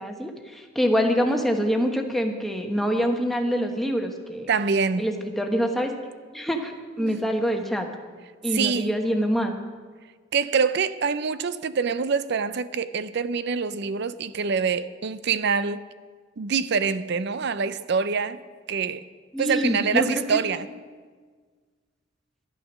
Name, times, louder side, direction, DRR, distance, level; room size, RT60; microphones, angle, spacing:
voice 1, 0.0-4.5 5.0-5.9 6.3-7.9 8.4-9.5 19.3-20.4, equal, ahead, 1.1 m, -25 dB
voice 2, 4.5-5.1 7.0-7.2 8.5-8.9 10.3-15.8 16.4-18.4 18.7-19.0 19.4-20.7, right 5 dB, 60° right, 0.5 m, -25 dB
11.5 x 11.0 x 6.2 m
head